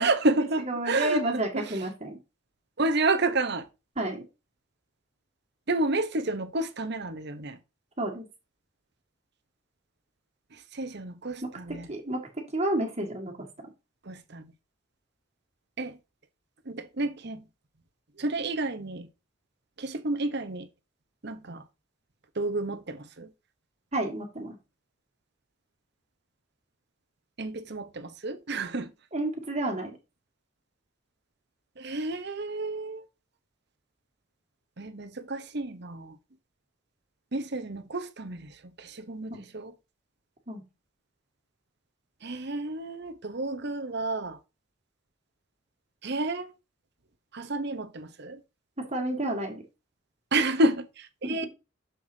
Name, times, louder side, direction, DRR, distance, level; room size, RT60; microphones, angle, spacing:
voice 1, 0.0-1.2 1.5-1.6 2.8-3.6 5.7-7.6 10.7-11.9 14.1-14.5 15.8-15.9 16.7-17.4 18.2-19.1 19.8-20.7 21.2-21.6 22.4-23.3 27.4-28.9 31.8-33.0 34.8-36.1 37.3-38.5 38.8-39.7 42.2-44.4 46.0-46.5 47.3-48.4 50.3-51.5, right 2 dB, 55° right, 1.0 m, -30 dB
voice 2, 0.7-2.2 4.0-4.2 8.0-8.2 11.7-13.3 23.9-24.6 29.1-30.0 39.3-39.5 40.5-40.6 48.9-49.6 51.2-51.4, right 1 dB, 35° right, 2.0 m, -30 dB
7.4 x 7.0 x 2.8 m
head